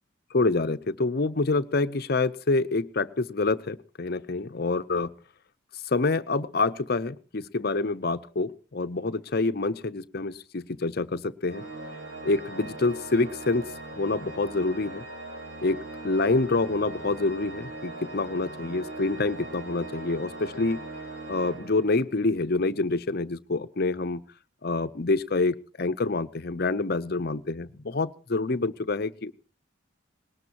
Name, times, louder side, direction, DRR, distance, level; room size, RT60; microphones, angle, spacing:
voice 1, 0.3-5.1 5.9-11.6 12.2-13.7 13.9-15.0 15.6-20.8 21.3-24.2 24.6-29.3, left 3 dB, 50° left, 12 dB, 0.7 m, -27 dB
Organ, 11.5-22.3, right 2 dB, 80° right, 3.9 m, -40 dB
20.0 x 18.5 x 2.9 m, 0.36 s
head